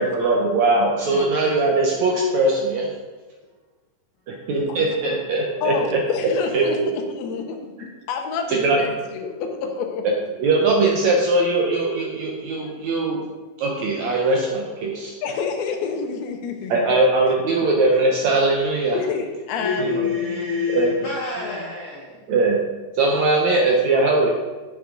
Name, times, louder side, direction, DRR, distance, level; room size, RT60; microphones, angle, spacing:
voice 1, 0.0-2.9 4.3-6.0 6.5-6.9 8.5-8.8 10.4-13.2 13.6-15.1 16.7-19.0 19.8-20.1 20.7-20.9 22.3-22.6 23.0-24.3, right 2 dB, 75° right, -1 dB, 1.7 m, -20 dB
voice 2, 1.1-1.6 5.6-10.1 15.2-16.8 18.9-20.8 21.4-21.6, left 5 dB, 80° left, 4 dB, 2.8 m, -29 dB
voice 3, 19.6-22.2, left 5 dB, 65° left, -6 dB, 1.3 m, -27 dB
8.5 x 7.0 x 3.8 m, 1.2 s
omnidirectional pair, 4.3 m